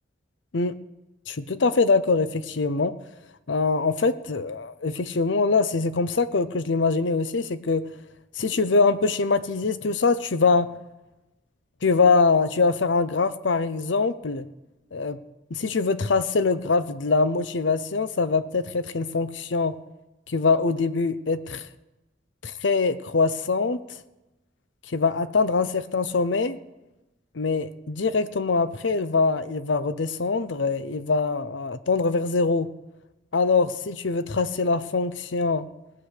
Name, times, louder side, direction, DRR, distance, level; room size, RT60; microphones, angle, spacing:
voice 1, 1.3-2.9 3.5-7.9 8.4-10.7 11.8-14.4 14.9-15.2 15.5-19.8 20.3-21.7 22.4-23.8 24.9-26.6 27.4-32.7 33.3-35.7, left 4 dB, 75° left, 14 dB, 0.7 m, -23 dB
18.0 x 7.9 x 6.6 m, 1.0 s
head